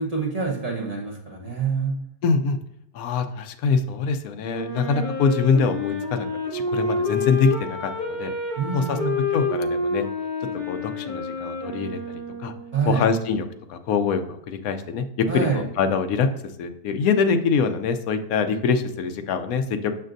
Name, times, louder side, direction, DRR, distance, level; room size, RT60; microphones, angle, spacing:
voice 1, 0.0-2.0 8.6-9.2 12.7-13.0 15.3-15.6, right 5 dB, 30° right, -3 dB, 0.8 m, -26 dB
voice 2, 2.2-2.6 2.9-6.3 6.5-8.3 8.7-9.0 9.3-10.0 10.7-12.0 12.4-12.5 12.9-16.3 16.6-19.9, left 5 dB, 70° left, 8 dB, 0.9 m, -24 dB
Wind instrument woodwind instrument, 4.5-12.8, left 3 dB, 30° left, 2.0 m, -28 dB
6.6 x 6.1 x 2.6 m, 0.75 s
omnidirectional pair, 1.9 m